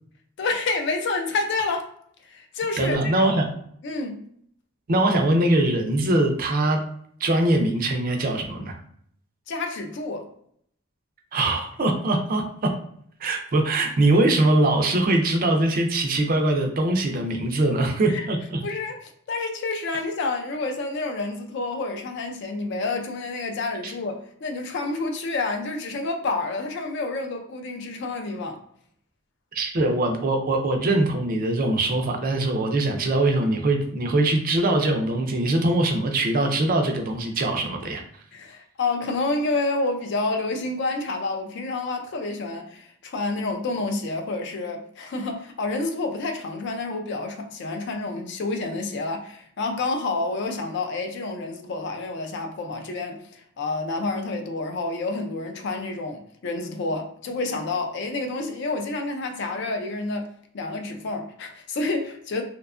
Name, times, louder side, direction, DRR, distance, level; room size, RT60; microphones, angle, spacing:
voice 1, 0.4-1.9 2.3-3.3 3.8-4.2 9.5-10.3 18.1-18.3 18.6-28.6 38.3-60.3 60.5-62.4, left 3 dB, 55° left, 0.3 m, -29 dB
voice 2, 2.8-3.5 4.9-6.8 7.2-8.8 11.3-12.7 13.2-18.6 23.8-23.9 29.5-38.0, right 2 dB, 40° right, 0.4 m, -22 dB
2.6 x 2.2 x 2.4 m
head